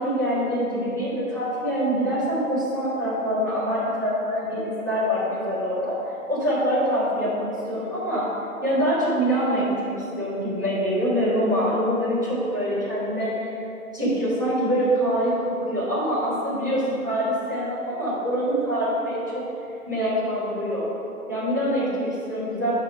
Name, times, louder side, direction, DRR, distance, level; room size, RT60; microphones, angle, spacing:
voice 1, 0.0-5.9 6.3-8.3 8.6-13.4 13.9-19.2 19.9-20.9 21.3-22.7, equal, 15° right, -13 dB, 0.9 m, -25 dB
5.6 x 4.8 x 5.8 m, 2.6 s
figure-of-eight pair, 155°, 45 cm